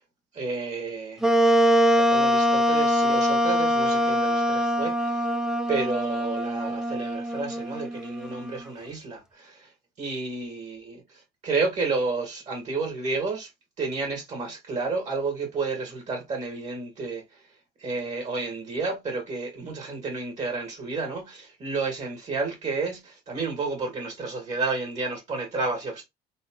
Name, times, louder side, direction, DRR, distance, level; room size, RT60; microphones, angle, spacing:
voice 1, 0.3-1.2 1.9-5.3 5.7-9.7 10.0-11.0 11.4-13.5 13.8-17.2 17.8-26.1, right 3 dB, 40° right, 2.1 m, -31 dB
Wind instrument woodwind instrument, 1.2-8.6, equal, 5° right, 0.5 m, -23 dB
4.1 x 2.7 x 3.7 m
cardioid pair, 110°, 17 cm